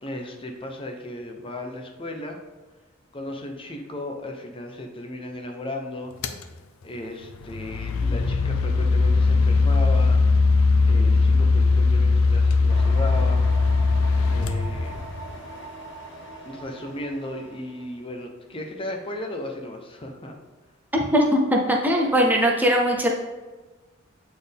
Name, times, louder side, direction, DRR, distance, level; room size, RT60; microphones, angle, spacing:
voice 1, 0.0-2.4 3.1-6.1 6.8-10.2 10.8-13.4 14.2-15.0 16.4-20.4, left 1 dB, 25° left, 3 dB, 0.7 m, -35 dB
sound 1, 6.2-6.4 7.3-15.3, left 3 dB, 80° left, 0.5 m, -20 dB
sound 2, 12.7-18.0, right 1 dB, 60° left, 1.2 m, -41 dB
voice 2, 20.9-23.1, equal, 10° right, 0 dB, 0.6 m, -20 dB
8.3 x 4.4 x 3.5 m, 1.2 s
head